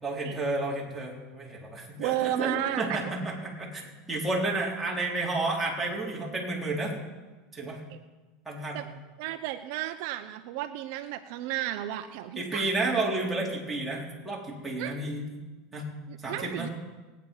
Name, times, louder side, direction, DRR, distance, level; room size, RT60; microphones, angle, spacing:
voice 1, 0.0-3.8 4.1-6.9 7.5-7.8 8.5-8.8 12.4-15.3 15.7-15.9 16.2-16.7, right 2 dB, 5° right, -4 dB, 4.1 m, -31 dB
voice 2, 2.0-3.0 7.9-8.0 8.7-8.9 9.2-12.7 14.8-14.9 16.1-16.7, right 13 dB, 65° right, 9 dB, 0.7 m, -33 dB
19.5 x 9.6 x 5.6 m, 1.2 s
supercardioid pair, 130°, 0 cm